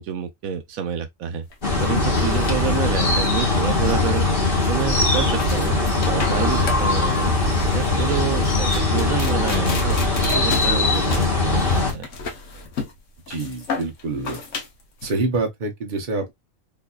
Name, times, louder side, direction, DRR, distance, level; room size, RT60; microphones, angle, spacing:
voice 1, 0.0-1.5 1.8-7.4 7.7-12.1, right 8 dB, 90° right, 1.2 m, -29 dB
sound 1, 1.5-15.1, left 4 dB, 65° left, 1.3 m, -34 dB
sound 2, 1.6-11.9, left 2 dB, 45° left, 1.3 m, -20 dB
voice 2, 13.3-14.4 15.0-16.3, right 3 dB, 40° right, 1.0 m, -26 dB
4.0 x 2.7 x 2.3 m
omnidirectional pair, 1.4 m